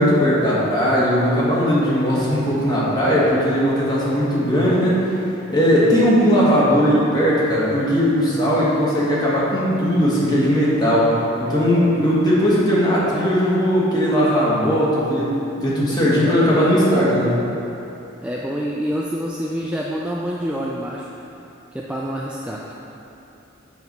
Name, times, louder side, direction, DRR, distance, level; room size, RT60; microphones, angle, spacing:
voice 1, 0.0-5.0 5.5-17.4, equal, 20° left, -7 dB, 1.7 m, -18 dB
voice 2, 15.8-16.8 18.2-21.1 21.7-22.7, equal, 5° right, -4 dB, 0.4 m, -27 dB
8.0 x 4.7 x 5.3 m, 2.9 s
head